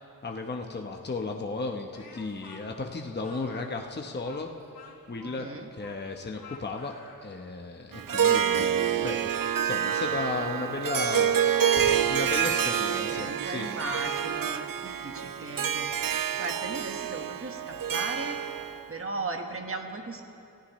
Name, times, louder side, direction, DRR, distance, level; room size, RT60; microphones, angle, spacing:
voice 1, 0.2-4.5 5.1-6.9 7.2-9.3 9.6-11.6 12.1-13.7, left 3 dB, 30° left, 2 dB, 0.9 m, -35 dB
Speech, 1.9-7.3, left 3 dB, 85° left, 2.7 m, -50 dB
voice 2, 5.2-5.7 12.9-15.9 16.4-18.4 18.9-20.2, right 3 dB, 35° right, 3 dB, 1.4 m, -37 dB
Harp, 7.9-18.9, right 9 dB, 65° right, 0.6 m, -27 dB
sound 1, 8.5-10.2 10.7-12.9, left 3 dB, 60° left, 2.0 m, -44 dB
29.5 x 14.5 x 3.1 m, 2.6 s
wide cardioid pair, 115°, 36 cm